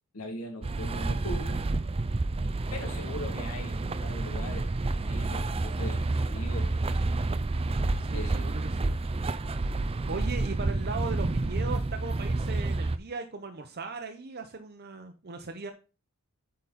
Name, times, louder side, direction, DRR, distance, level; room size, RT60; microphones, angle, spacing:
voice 1, 0.1-1.6 2.7-4.7 5.1-6.8 8.1-8.6, left 1 dB, 80° left, 1 dB, 2.4 m, -40 dB
sound 1, 0.6-13.0, right 2 dB, 25° right, 0.4 m, -29 dB
voice 2, 8.0-8.9 10.1-15.7, right 4 dB, 45° right, 5 dB, 0.8 m, -38 dB
8.6 x 5.2 x 4.1 m, 0.32 s
head